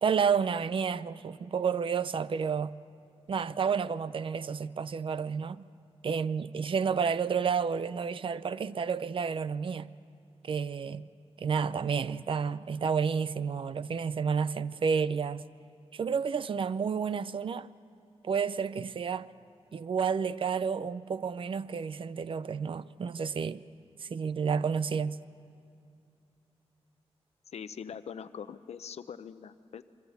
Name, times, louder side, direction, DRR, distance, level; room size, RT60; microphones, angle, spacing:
voice 1, 0.0-2.7 3.3-5.6 6.0-9.9 10.4-11.1 11.4-15.4 15.9-17.7 18.2-19.3 19.7-23.6 24.0-25.2, right 6 dB, 55° right, 0.5 m, -30 dB
voice 2, 27.5-29.8, left 7 dB, 85° left, 0.7 m, -42 dB
27.5 x 23.0 x 8.1 m
wide cardioid pair, 160°, 11 cm